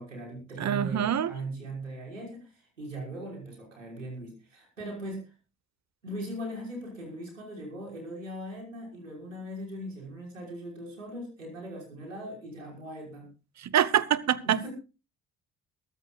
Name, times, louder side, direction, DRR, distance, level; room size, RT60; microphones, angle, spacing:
voice 1, 0.0-5.3 6.0-13.3 14.5-14.7, right 1 dB, 90° right, 5.6 m, -39 dB
voice 2, 0.6-1.3 13.6-14.7, right 9 dB, 45° right, 1.2 m, -25 dB
22.0 x 13.5 x 2.4 m
figure-of-eight pair, 45°, 37 cm